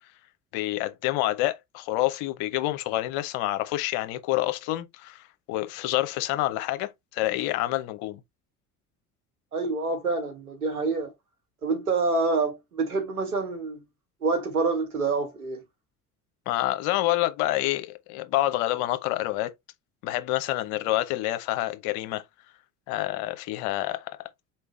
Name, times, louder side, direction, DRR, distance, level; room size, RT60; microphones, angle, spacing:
voice 1, 0.5-8.2 16.5-19.5 20.0-22.2 22.9-24.2, left 16 dB, 60° left, 0.8 m, -28 dB
voice 2, 9.5-11.1 11.6-13.8 14.2-15.6, right 3 dB, 90° right, 1.3 m, -27 dB
4.4 x 3.3 x 3.2 m
hypercardioid pair, 60°, 43 cm